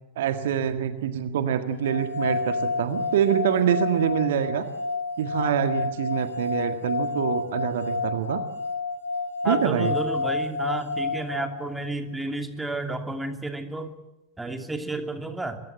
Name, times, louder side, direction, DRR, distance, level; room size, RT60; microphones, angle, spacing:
voice 1, 0.2-4.7 5.2-8.4 9.4-9.9, right 9 dB, 55° right, 9 dB, 1.8 m, -25 dB
sound 1, 1.8-11.9, left 3 dB, 75° left, 5.5 m, -30 dB
voice 2, 9.4-13.9 14.4-15.6, right 2 dB, 5° right, 6 dB, 2.8 m, -31 dB
24.0 x 22.0 x 7.6 m, 0.96 s
figure-of-eight pair, 90°, 0 cm